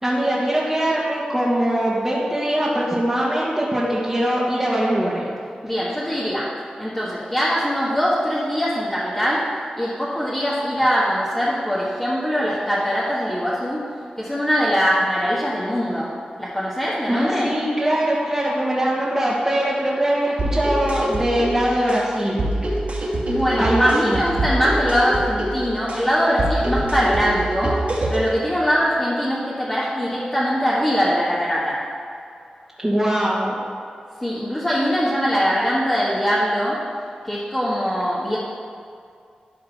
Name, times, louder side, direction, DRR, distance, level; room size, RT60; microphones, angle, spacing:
voice 1, 0.0-5.3 17.1-22.4 23.6-24.2 32.8-33.5, right 1 dB, 10° right, -7 dB, 1.5 m, -22 dB
voice 2, 5.6-6.5 6.8-9.5 9.8-13.9 14.2-16.1 16.4-17.5 23.3-31.8 34.2-36.8 37.2-38.4, equal, 15° left, -8 dB, 1.5 m, -22 dB
sound 1, 20.4-28.4, right 1 dB, 55° right, 2.1 m, -25 dB
12.0 x 4.0 x 5.7 m, 2.4 s
wide cardioid pair, 70°, 3 cm